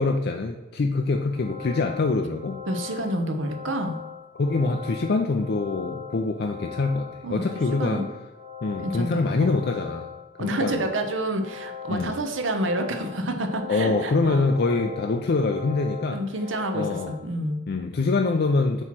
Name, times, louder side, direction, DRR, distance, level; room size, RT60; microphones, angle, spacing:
voice 1, 0.0-2.6 4.3-8.0 8.6-10.0 10.4-10.8 11.9-12.1 13.7-16.2 16.7-17.1 17.7-18.8, left 3 dB, 50° left, 4 dB, 0.4 m, -24 dB
sound 1, 1.1-17.2, left 7 dB, 40° right, 1.4 m, -40 dB
voice 2, 2.7-4.0 7.2-7.4 7.8-8.0 8.8-9.6 10.4-14.5 16.1-17.6, right 1 dB, 70° right, 5 dB, 0.8 m, -28 dB
7.7 x 3.0 x 5.9 m, 1.2 s
head